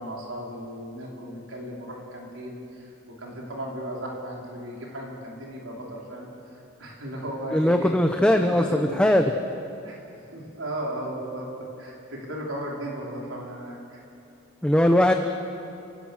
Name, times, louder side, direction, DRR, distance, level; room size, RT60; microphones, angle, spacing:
voice 1, 0.0-2.9 3.2-7.9 8.4-9.0 9.8-10.0 10.3-11.5 11.8-14.0, right 1 dB, 80° right, -3 dB, 4.8 m, -36 dB
voice 2, 7.5-8.6 9.0-9.3 14.6-15.1, left 1 dB, 5° left, 5 dB, 0.7 m, -19 dB
29.0 x 17.5 x 6.6 m, 2.8 s
head